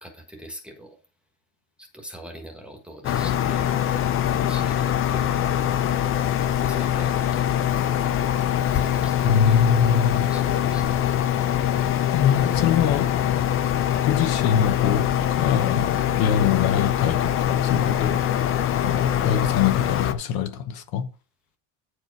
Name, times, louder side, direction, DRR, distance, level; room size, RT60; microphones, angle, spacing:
voice 1, 0.0-1.0 1.8-3.7 4.3-5.5 6.6-7.7 8.7-9.7 10.2-11.2, equal, ahead, 1.4 m, -42 dB
sound 1, 3.0-20.1, left 10 dB, 30° left, 0.5 m, -23 dB
voice 2, 9.2-10.3 11.7-13.1 14.0-18.2 18.7-21.1, left 8 dB, 50° left, 1.0 m, -23 dB
9.5 x 4.9 x 4.6 m
cardioid pair, 170°, 45 cm